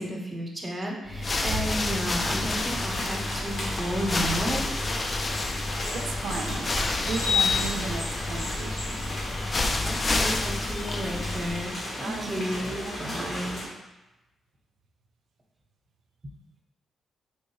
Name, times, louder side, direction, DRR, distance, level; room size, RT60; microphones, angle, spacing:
voice 1, 0.0-4.6 9.8-11.7 12.0-13.6, equal, 30° right, 0 dB, 0.7 m, -32 dB
sound 1, 1.1-11.7, left 2 dB, 40° left, 0.3 m, -30 dB
sound 2, 2.4-13.6, left 3 dB, 65° left, 0.9 m, -33 dB
voice 2, 5.9-6.7 7.0-9.1 12.0-13.4, right 4 dB, 80° right, 4 dB, 0.4 m, -36 dB
3.3 x 2.6 x 3.0 m, 1.0 s
cardioid pair, 70°, 0 cm